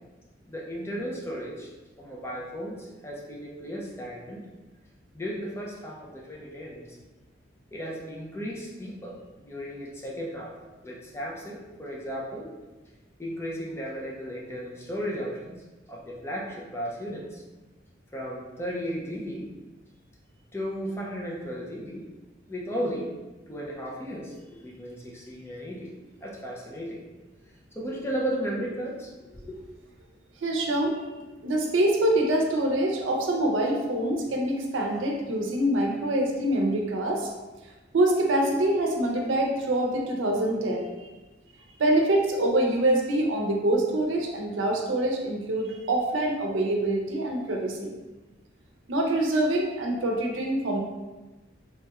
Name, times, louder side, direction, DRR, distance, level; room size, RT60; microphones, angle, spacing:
voice 1, 0.5-1.7 2.0-4.4 5.1-6.8 7.7-10.5 10.8-12.5 13.2-15.6 15.9-17.4 18.1-19.5 20.5-22.0 22.5-23.1 23.5-26.0 26.2-27.0 27.7-29.6, equal, 15° left, -3 dB, 0.4 m, -35 dB
voice 2, 30.4-30.9 31.4-37.3 37.9-40.9 41.8-47.9 48.9-50.8, right 1 dB, 85° right, 1 dB, 0.5 m, -25 dB
3.1 x 2.9 x 2.3 m, 1.2 s
head